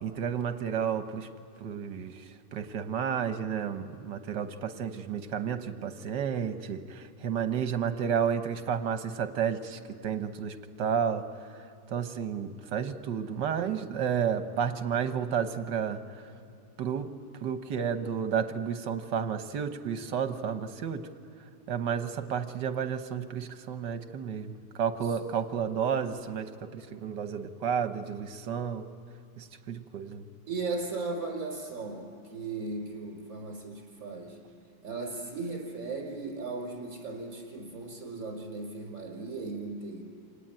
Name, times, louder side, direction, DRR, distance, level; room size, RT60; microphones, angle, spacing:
voice 1, 0.0-1.3 1.6-2.2 2.5-11.3 11.9-16.0 16.8-17.1 17.4-21.0 21.7-28.9 29.4-30.2, right 7 dB, 75° right, 8 dB, 1.8 m, -31 dB
voice 2, 30.4-34.4 34.8-40.0, right 3 dB, 40° right, 1 dB, 5.3 m, -37 dB
26.0 x 19.0 x 8.9 m, 2.8 s
omnidirectional pair, 1.9 m